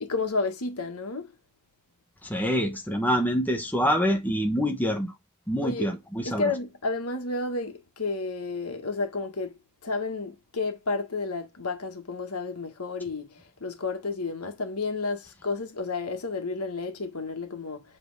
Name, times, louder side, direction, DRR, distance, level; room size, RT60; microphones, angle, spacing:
voice 1, 0.0-1.3 5.6-5.9 6.2-9.5 9.8-17.8, left 3 dB, 85° left, 1.6 m, -31 dB
voice 2, 2.2-5.1 5.5-6.5, equal, 10° left, 1.1 m, -26 dB
7.8 x 3.5 x 4.8 m
head